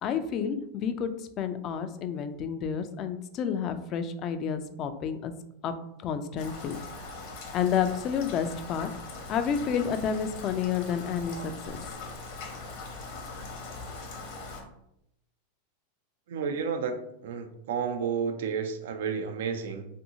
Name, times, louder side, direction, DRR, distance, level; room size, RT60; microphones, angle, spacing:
voice 1, 0.0-5.3 5.6-5.7 6.0-6.8 7.5-8.9 9.3-11.8, left 7 dB, 40° left, 9 dB, 0.3 m, -30 dB
Rain, 6.4-14.6, left 3 dB, 60° left, 0.7 m, -41 dB
voice 2, 16.3-19.9, right 6 dB, 75° right, 6 dB, 0.4 m, -31 dB
2.6 x 2.6 x 2.7 m, 0.79 s
hypercardioid pair, 115°, 0 cm